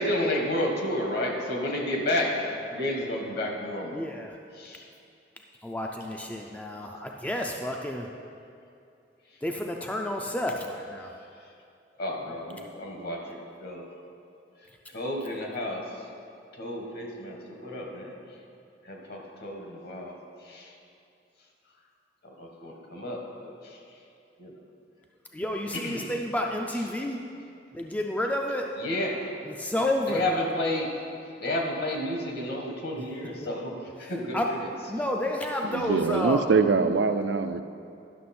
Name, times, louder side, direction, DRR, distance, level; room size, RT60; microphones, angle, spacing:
voice 1, 0.0-4.0 4.5-4.9 12.0-13.9 14.9-15.9 16.5-18.1 18.8-20.2 20.4-20.7 22.2-23.8 24.4-24.5 25.7-26.1 28.8-29.3 30.1-30.9 31.4-33.7 34.0-34.7, left 1 dB, 60° left, 1 dB, 1.3 m, -31 dB
voice 2, 3.9-4.4 5.6-8.1 9.4-11.1 25.3-27.2 27.7-28.8 29.4-30.2 34.0-34.5 34.9-36.4, left 1 dB, 10° left, 1 dB, 0.3 m, -30 dB
voice 3, 35.6-37.6, right 5 dB, 75° right, 10 dB, 0.4 m, -23 dB
11.0 x 6.2 x 4.2 m, 2.6 s
head